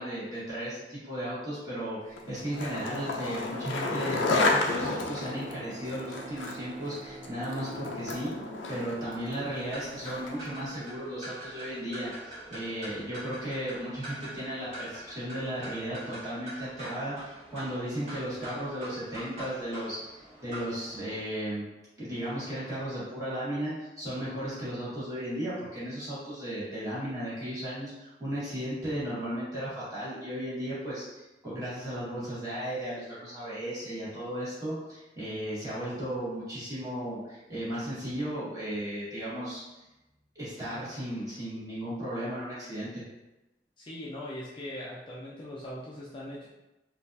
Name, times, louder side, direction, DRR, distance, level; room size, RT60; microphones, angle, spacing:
voice 1, 0.0-8.3 8.7-12.1 12.5-21.6 22.0-39.6 40.3-43.0, right 1 dB, 20° right, -11 dB, 1.5 m, -35 dB
Skateboard, 2.2-10.5, left 2 dB, 90° left, 0.5 m, -32 dB
sound 1, 4.7-8.6, right 2 dB, 70° right, 0.6 m, -46 dB
sound 2, 9.6-21.2, right 1 dB, 35° right, 1.3 m, -44 dB
voice 2, 43.8-46.5, left 1 dB, 25° left, -6 dB, 0.4 m, -40 dB
3.9 x 2.4 x 2.6 m, 1.0 s
head